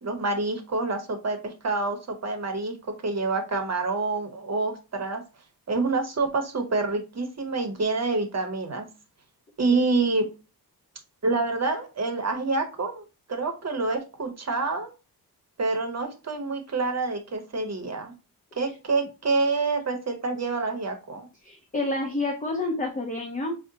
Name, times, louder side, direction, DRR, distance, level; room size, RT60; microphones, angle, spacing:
voice 1, 0.0-5.2 5.7-8.9 9.6-10.3 11.2-13.0 13.3-14.9 15.6-18.1 18.6-21.3, right 3 dB, 40° right, 5 dB, 0.8 m, -27 dB
voice 2, 21.4-23.6, left 2 dB, 20° left, 2 dB, 0.6 m, -29 dB
4.9 x 2.2 x 2.7 m, 0.31 s
wide cardioid pair, 105°, 41 cm